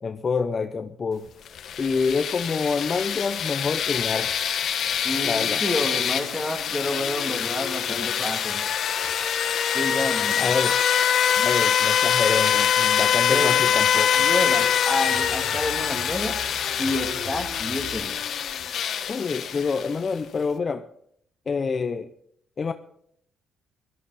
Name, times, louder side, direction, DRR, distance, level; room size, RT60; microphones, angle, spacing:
voice 1, 0.0-1.3 1.8-4.3 5.2-5.6 10.4-10.8 11.4-14.3 19.1-20.9 21.5-22.1 22.6-22.7, left 5 dB, 40° left, 0.6 m, -27 dB
sound 1, 1.5-20.1, left 8 dB, 65° left, 1.1 m, -24 dB
voice 2, 5.0-8.6 9.7-10.5 13.3-13.5 14.1-16.4 16.8-18.2, left 2 dB, 5° left, 2.6 m, -29 dB
sound 2, 12.1-18.0, right 2 dB, 90° right, 7.2 m, -45 dB
17.0 x 12.5 x 4.1 m
cardioid pair, 90°, 0 cm